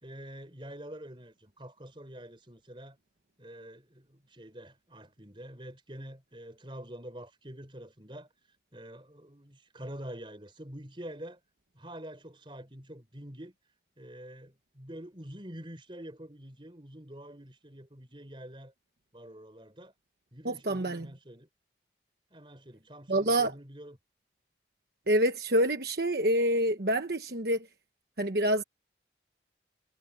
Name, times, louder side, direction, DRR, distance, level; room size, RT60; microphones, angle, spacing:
voice 1, 0.0-3.0 3.4-8.3 8.7-11.4 11.7-13.5 14.0-18.7 19.1-19.9 20.3-21.5 22.3-24.0, right 1 dB, 30° right, 4.7 m, -46 dB
voice 2, 20.4-21.1 23.1-23.5 25.1-27.7 28.2-28.6, right 1 dB, 60° right, 1.2 m, -27 dB
head